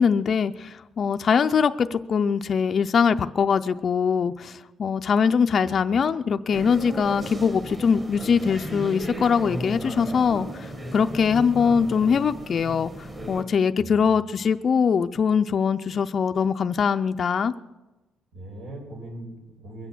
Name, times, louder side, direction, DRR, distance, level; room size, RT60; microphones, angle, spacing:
voice 1, 0.0-12.9 13.3-17.5, left 6 dB, 35° left, 7 dB, 0.4 m, -22 dB
sound 1, 6.5-13.4, right 1 dB, 20° right, 1.6 m, -35 dB
voice 2, 13.8-14.2 18.3-19.9, right 2 dB, 80° right, 1 dB, 5.2 m, -40 dB
22.0 x 8.3 x 7.3 m, 1.1 s
cardioid pair, 165°, 0 cm